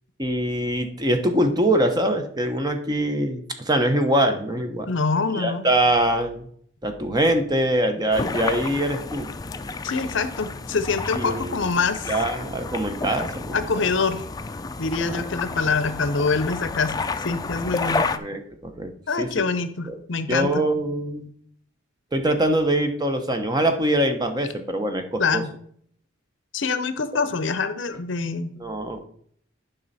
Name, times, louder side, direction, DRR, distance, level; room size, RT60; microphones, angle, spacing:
voice 1, 0.2-4.9 5.3-6.5 6.8-9.3 11.1-11.6 12.1-13.9 15.0-15.3 18.0-18.9 19.2-19.3 19.9-20.0 20.3-21.3 22.1-25.4 28.6-29.0, right 1 dB, 20° right, 6 dB, 0.8 m, -23 dB
voice 2, 4.9-5.7 9.8-12.1 13.5-14.3 14.8-18.1 19.1-20.6 25.2-25.5 26.5-28.5, left 4 dB, 65° left, 11 dB, 0.7 m, -25 dB
sound 1, 8.1-18.2, left 3 dB, 20° left, 0.4 m, -31 dB
11.0 x 5.5 x 4.1 m, 0.63 s
head